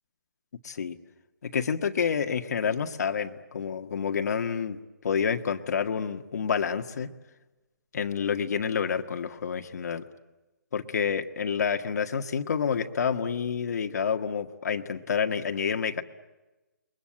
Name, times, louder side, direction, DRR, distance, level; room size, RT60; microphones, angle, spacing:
voice 1, 0.6-1.0 1.4-4.8 5.0-7.1 7.9-10.0 10.7-16.0, left 6 dB, 60° left, 6 dB, 1.7 m, -28 dB
29.0 x 23.0 x 8.9 m, 1.1 s
hypercardioid pair, 165°, 10 cm